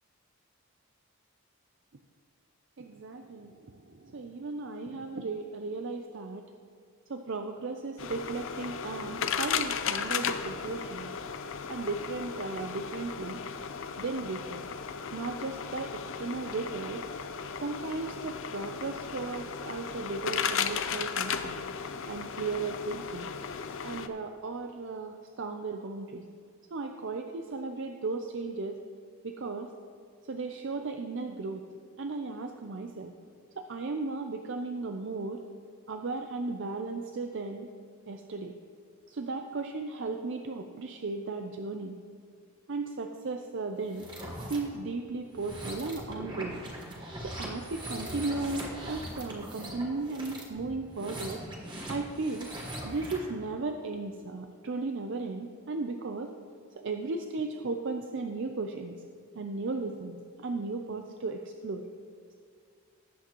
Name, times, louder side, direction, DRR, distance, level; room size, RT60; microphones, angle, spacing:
voice 1, 2.8-6.4 7.1-11.1 11.7-13.4 14.0-14.6 15.1-17.0 17.6-21.6 22.1-23.3 23.8-26.2 26.7-28.8 29.2-29.7 30.3-33.1 33.6-35.4 35.9-37.7 38.1-38.5 39.1-41.9 42.7-44.1 44.5-46.6 47.2-51.4 51.8-52.5 52.8-56.3 56.8-59.0 59.4-61.8, right 3 dB, 55° right, 5 dB, 0.5 m, -36 dB
sound 1, 8.0-24.1, left 7 dB, 60° left, 0.5 m, -35 dB
sound 2, 43.8-44.6 45.3-53.3, right 1 dB, 20° right, 1.5 m, -41 dB
18.5 x 8.4 x 3.0 m, 2.2 s
head